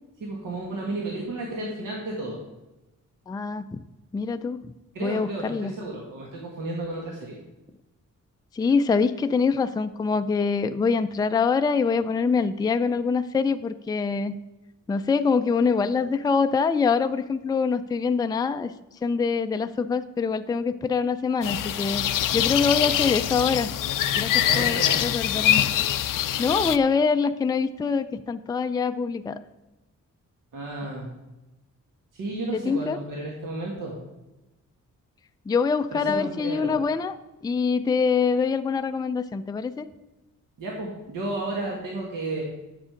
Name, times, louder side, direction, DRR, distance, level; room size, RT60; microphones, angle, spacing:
voice 1, 0.2-2.4 4.9-7.4 24.4-25.0 30.5-31.1 32.1-33.9 35.9-36.7 40.6-42.4, right 2 dB, 80° right, -2 dB, 1.9 m, -32 dB
voice 2, 3.3-3.8 4.1-4.7 5.0-5.7 8.5-14.4 14.9-18.7 19.0-22.1 22.3-23.7 24.2-25.7 26.4-29.4 32.5-33.0 35.5-37.2 37.4-39.9, left 5 dB, 15° left, 9 dB, 0.3 m, -24 dB
sound 1, 21.4-26.8, left 12 dB, 85° left, 0.5 m, -24 dB
9.9 x 7.5 x 5.0 m, 1.1 s
wide cardioid pair, 165°, 32 cm